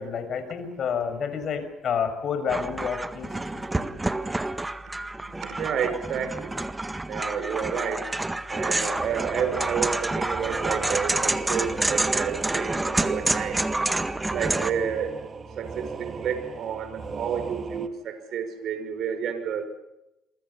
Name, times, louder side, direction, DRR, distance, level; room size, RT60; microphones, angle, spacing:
voice 1, 0.0-3.3 3.8-3.9, left 7 dB, 55° left, 9 dB, 6.3 m, -29 dB
sound 1, 2.5-14.7, right 2 dB, 15° right, 1.7 m, -28 dB
voice 2, 5.4-6.6 7.1-8.1 8.5-13.7 14.3-15.1 15.6-19.7, right 7 dB, 60° right, 9 dB, 5.5 m, -30 dB
sound 2, 8.9-17.9, right 5 dB, 40° right, 2.8 m, -37 dB
27.5 x 24.0 x 5.8 m, 0.93 s
supercardioid pair, 75°, 0 cm